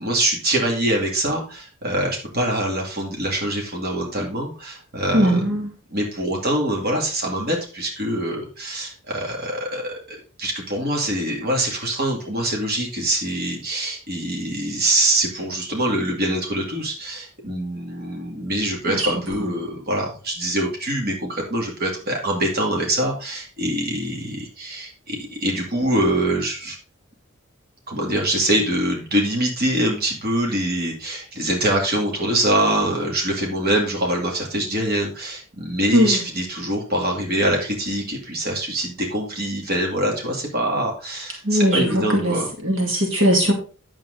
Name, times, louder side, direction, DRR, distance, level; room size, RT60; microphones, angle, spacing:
voice 1, 0.0-5.5 5.9-26.8 27.9-42.5, right 1 dB, 45° right, 0 dB, 2.3 m, -24 dB
voice 2, 5.1-5.7 18.9-19.0 35.9-36.2 41.4-42.4 42.6-43.5, equal, 65° right, 1 dB, 2.3 m, -19 dB
9.1 x 7.4 x 3.8 m, 0.36 s
head